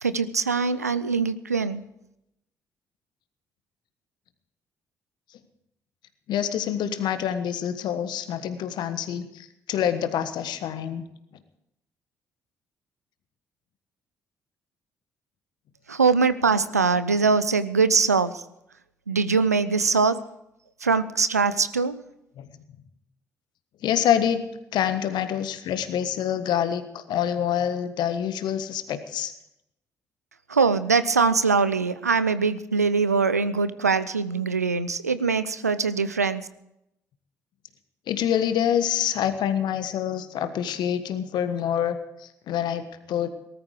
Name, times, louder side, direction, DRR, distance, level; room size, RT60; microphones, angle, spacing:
voice 1, 0.0-1.8 15.9-18.4 19.1-20.2 20.8-22.0 30.5-36.5, right 4 dB, 90° right, 15 dB, 0.5 m, -22 dB
voice 2, 6.3-11.1 22.4-22.5 23.8-24.4 24.7-29.3 38.1-43.3, left 9 dB, 60° left, 11 dB, 1.4 m, -26 dB
19.0 x 13.0 x 4.9 m, 0.81 s
figure-of-eight pair, 45°, 8 cm